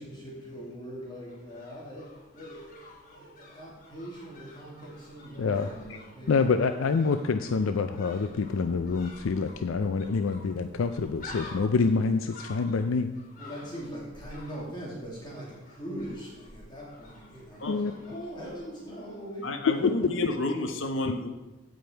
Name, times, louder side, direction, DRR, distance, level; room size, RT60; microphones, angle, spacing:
voice 1, 0.0-6.5 13.4-20.0, equal, 25° left, -5 dB, 2.6 m, -41 dB
sound 1, 1.1-19.2 19.5-19.6, left 2 dB, 45° left, 3.2 m, -50 dB
voice 2, 5.4-5.7 6.3-13.1 17.7-17.9, left 4 dB, 85° left, 8 dB, 0.5 m, -26 dB
voice 3, 19.4-21.3, left 2 dB, 70° left, 6 dB, 1.0 m, -30 dB
15.5 x 5.3 x 4.5 m, 1.1 s
head